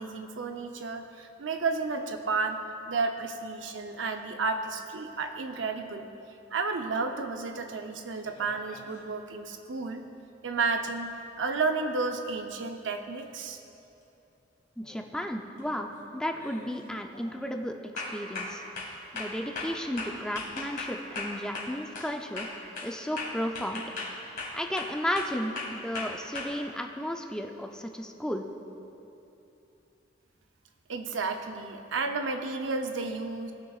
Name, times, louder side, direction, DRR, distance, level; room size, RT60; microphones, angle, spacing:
voice 1, 0.0-2.6 2.9-6.1 6.5-10.0 10.4-13.6 30.9-33.5, right 4 dB, 85° right, 6 dB, 0.7 m, -32 dB
sound 1, 8.2-9.0 13.2-13.3 14.8-15.1 15.5-15.9 16.3-16.7 17.1-17.3 18.0-22.1 22.4-26.5, left 3 dB, 50° left, 1.9 m, -38 dB
voice 2, 14.8-18.6 19.1-22.5 22.8-23.8 24.5-28.4, equal, 5° left, 3 dB, 0.4 m, -34 dB
19.0 x 6.4 x 2.4 m, 2.9 s
head